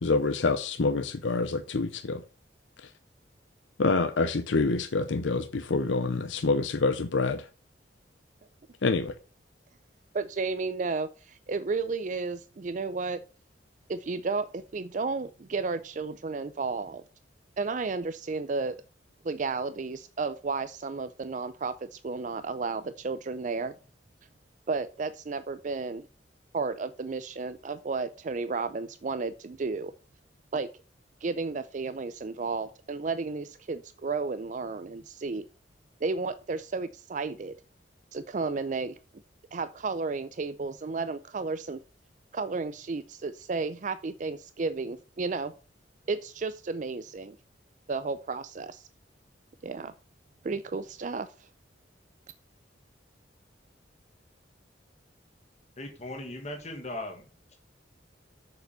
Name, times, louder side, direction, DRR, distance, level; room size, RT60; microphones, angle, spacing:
voice 1, 0.0-2.2 2.8-2.9 3.8-7.5 8.8-9.1, left 3 dB, 85° left, 0.7 m, -27 dB
voice 2, 10.1-13.2 13.9-17.0 17.6-18.8 19.2-23.7 24.7-26.1 26.5-29.9 30.5-30.7 31.2-35.4 36.0-37.6 38.1-39.0 39.5-41.8 42.3-45.5 46.1-47.4 47.9-48.9 49.6-49.9 50.4-51.5, right 4 dB, 40° right, 0.4 m, -32 dB
voice 3, 55.8-57.2, left 1 dB, 35° left, 1.6 m, -38 dB
6.9 x 6.7 x 6.7 m
head